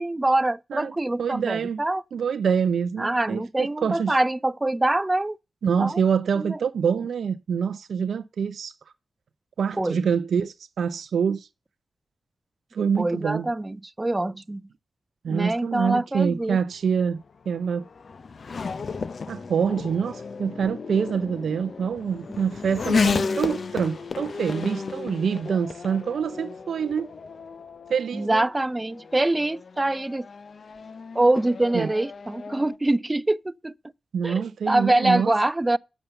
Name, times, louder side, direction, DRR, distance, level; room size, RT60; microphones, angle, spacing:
voice 1, 0.0-2.0 3.0-5.4 5.8-6.0 6.4-6.6 9.8-10.0 13.0-14.7 15.3-16.6 28.1-30.3 31.1-33.7 34.2-35.8, right 2 dB, 25° right, 0.5 m, -24 dB
voice 2, 0.7-1.8 2.1-4.2 5.6-8.7 9.6-11.5 12.7-13.5 15.2-17.9 19.3-27.1 27.9-28.4 31.7-31.9 34.1-35.3, right 7 dB, 80° right, 0.4 m, -26 dB
Race car auto racing / Accelerating revving vroom, 16.7-32.8, left 4 dB, 65° left, 0.7 m, -33 dB
7.0 x 6.8 x 6.9 m
supercardioid pair, 40°, 0 cm